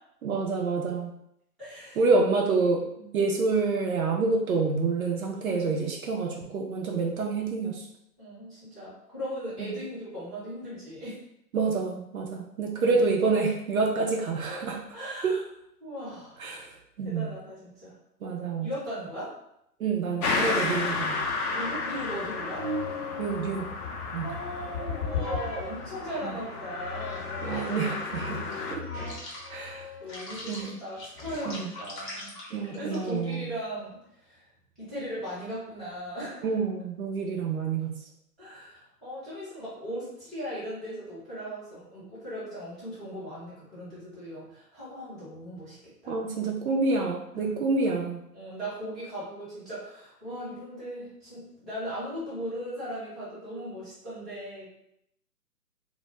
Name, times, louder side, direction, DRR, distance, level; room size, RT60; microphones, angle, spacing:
voice 1, 0.2-1.1 2.0-2.8 3.1-7.8 9.6-9.7 11.5-14.8 15.2-15.3 16.4-17.3 18.2-18.7 19.8-21.3 23.2-23.7 24.1-24.3 26.2-26.3 27.4-28.5 28.7-28.8 29.5-29.9 30.5-30.8 31.5-31.7 32.5-33.5 36.4-38.0 46.1-48.2, right 4 dB, 60° right, 0 dB, 0.5 m, -27 dB
voice 2, 1.6-2.0 3.0-3.1 5.3-5.6 8.2-11.1 14.9-15.4 15.8-16.4 17.0-18.0 18.6-19.3 21.5-22.7 24.2-27.4 29.6-32.4 32.6-34.4 34.8-36.5 38.4-45.8 46.0-46.3 47.3-47.6 48.3-54.7, equal, ahead, -14 dB, 0.8 m, -38 dB
sound 1, 20.2-28.8, left 3 dB, 65° left, 0.6 m, -33 dB
sound 2, 21.2-26.1 26.7-33.3, left 3 dB, 30° left, 0.7 m, -38 dB
2.2 x 2.2 x 2.9 m, 0.78 s
figure-of-eight pair, 130°, 48 cm